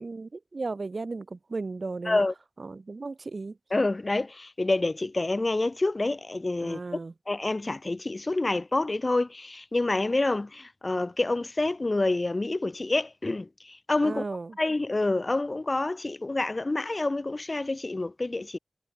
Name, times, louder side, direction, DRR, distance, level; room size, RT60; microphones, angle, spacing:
voice 1, 0.0-2.2 2.6-3.6 6.6-7.1 14.0-14.6, right 3 dB, 50° right, 1.3 m, -35 dB
voice 2, 3.7-6.8 7.3-14.2 14.6-18.6, left 2 dB, 35° left, 0.5 m, -27 dB
wide cardioid pair, 75°, 0 cm